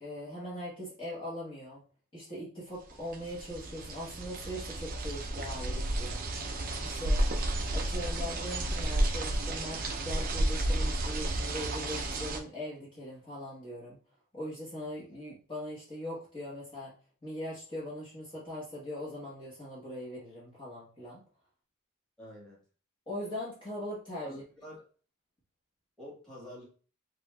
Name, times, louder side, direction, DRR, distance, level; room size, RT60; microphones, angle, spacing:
voice 1, 0.0-1.8 2.1-6.2 6.8-7.2 7.7-14.0 14.3-16.9 17.2-21.2 23.1-24.3, left 1 dB, 25° left, -8 dB, 1.1 m, -40 dB
sound 1, 2.9-12.4, right 1 dB, 40° right, 0.5 m, -32 dB
voice 2, 22.2-22.6 24.2-24.8 26.0-26.6, equal, 5° left, -6 dB, 1.5 m, -46 dB
3.0 x 2.6 x 3.3 m, 0.39 s
head